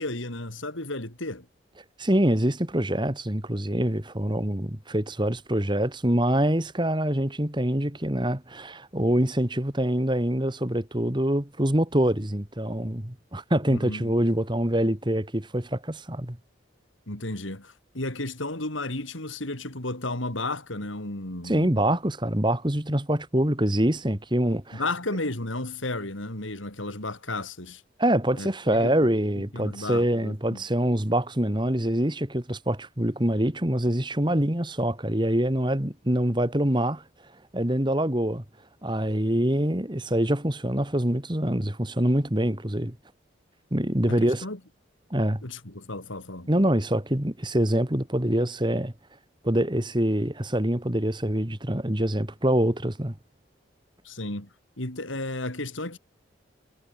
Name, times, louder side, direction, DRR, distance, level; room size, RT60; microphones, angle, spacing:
voice 1, 0.0-1.5 13.7-14.1 17.1-22.0 24.7-27.8 28.4-30.6 44.1-44.6 45.4-46.5 54.0-54.5 54.8-56.0, left 2 dB, 80° left, 4.4 m, -33 dB
voice 2, 2.0-16.4 21.4-24.8 28.0-37.0 37.5-38.4 38.8-43.0 43.7-44.4 45.1-45.4 46.5-48.9 49.4-53.1, right 1 dB, 25° right, 2.1 m, -25 dB
head